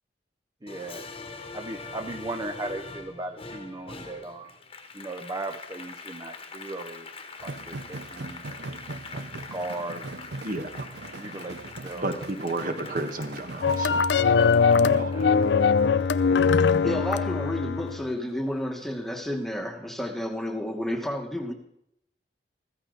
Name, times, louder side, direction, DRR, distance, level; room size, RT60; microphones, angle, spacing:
voice 1, 0.6-1.0 1.5-4.5 4.9-7.1 7.4-8.4 9.1-10.3 11.1-12.1 12.7-13.0 14.9-15.2, right 2 dB, 20° right, 6 dB, 0.6 m, -37 dB
Applause, 0.7-17.5 17.9-19.0, left 4 dB, 30° left, 1.2 m, -44 dB
sound 1, 7.4-14.0, right 2 dB, 70° right, 0.6 m, -40 dB
voice 2, 10.4-10.9 11.9-15.4, right 2 dB, 50° right, 6 dB, 1.3 m, -33 dB
sound 2, 13.6-18.0, left 5 dB, 75° left, 0.5 m, -21 dB
voice 3, 16.8-21.5, left 1 dB, ahead, 4 dB, 1.2 m, -31 dB
14.5 x 14.5 x 3.9 m, 0.76 s
head